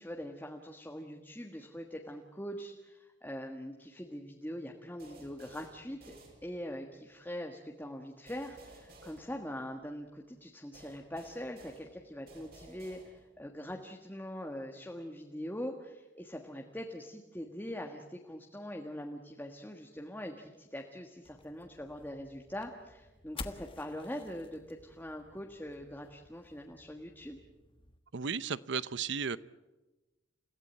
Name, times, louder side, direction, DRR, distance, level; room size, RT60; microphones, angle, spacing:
voice 1, 0.0-6.1 6.4-27.4, equal, 10° left, 2 dB, 1.5 m, -43 dB
sound 1, 5.0-6.9 8.3-10.0 10.7-13.5, right 1 dB, 55° right, 6.1 m, -56 dB
sound 2, 21.2-28.0, left 3 dB, 25° left, 1.3 m, -51 dB
voice 2, 28.1-29.4, right 6 dB, 70° right, 17 dB, 0.7 m, -34 dB
29.5 x 16.5 x 9.0 m, 1.1 s
head